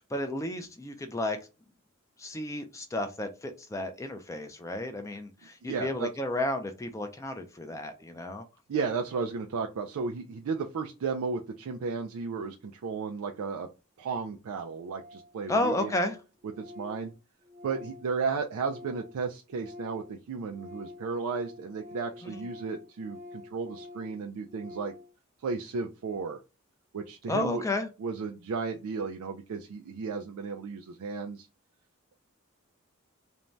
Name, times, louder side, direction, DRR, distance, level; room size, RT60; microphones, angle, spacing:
voice 1, 0.1-1.4 2.2-8.4 15.5-16.2 22.2-22.4 27.3-27.9, left 1 dB, 15° left, 0.3 m, -32 dB
voice 2, 5.6-6.1 8.7-13.7 14.0-15.9 16.6-17.1 17.6-24.9 25.4-26.4 26.9-27.6 28.0-31.5, right 5 dB, 85° right, 0.4 m, -34 dB
Organ, 14.0-14.1 14.3-14.4 14.6-14.7 14.9-15.3 15.6-19.2 19.5-25.1, left 2 dB, 35° right, 0.5 m, -48 dB
2.6 x 2.2 x 3.0 m
head